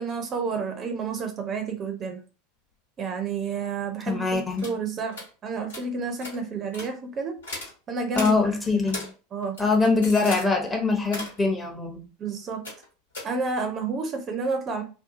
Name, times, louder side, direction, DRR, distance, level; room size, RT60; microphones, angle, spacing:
voice 1, 0.0-2.2 3.0-7.4 7.9-8.3 8.7-8.8 9.3-9.6 12.2-12.7 13.2-14.8, right 4 dB, 35° right, 0.5 m, -30 dB
voice 2, 4.1-4.7 8.2-9.0 9.6-12.0, left 3 dB, 15° left, 0.7 m, -23 dB
sound 1, 4.6-4.8 5.1-5.3 5.7-5.9 6.2-6.4 6.7-6.9 7.4-7.7 8.1-8.3 8.9-9.1 9.4-10.5 11.0-11.4 12.6-12.9 13.1-13.2, left 2 dB, 75° left, 1.2 m, -36 dB
2.7 x 2.3 x 2.5 m
figure-of-eight pair, 80°, 0 cm